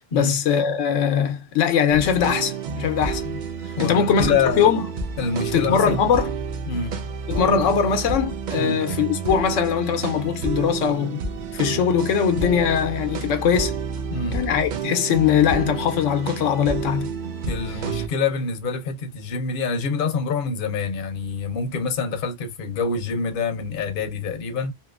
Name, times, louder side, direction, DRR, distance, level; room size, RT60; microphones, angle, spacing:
voice 1, 0.0-3.4 3.8-4.9 5.5-6.3 7.3-11.2 11.5-13.8 14.3-17.1, left 7 dB, 80° left, 1.0 m, -21 dB
sound 1, 1.9-18.1, right 5 dB, 55° right, 0.5 m, -30 dB
voice 2, 3.8-4.7 5.2-6.0 6.7-7.0 8.6-8.8 14.1-14.4 17.5-24.7, left 5 dB, 55° left, 0.8 m, -26 dB
2.8 x 2.7 x 2.3 m
omnidirectional pair, 1.3 m